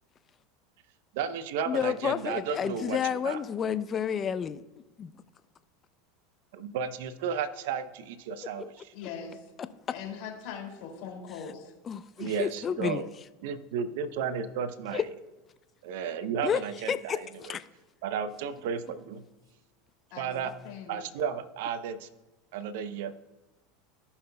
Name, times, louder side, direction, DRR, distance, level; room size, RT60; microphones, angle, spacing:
voice 1, 1.1-3.0 3.2-3.4 6.5-8.7 12.2-13.1 13.4-15.0 15.8-17.5 18.0-19.2 20.2-20.5 20.9-22.1 22.5-23.1, right 7 dB, 70° right, 0.6 m, -33 dB
voice 2, 1.7-4.6 5.0-5.1 11.9-13.0 14.9-15.0 16.4-16.6 16.9-17.6, left 8 dB, 35° left, 0.5 m, -30 dB
voice 3, 8.9-9.5 9.9-11.7 20.1-21.0, left 7 dB, 65° left, 2.6 m, -41 dB
15.5 x 5.6 x 2.3 m
hypercardioid pair, 95°, 0 cm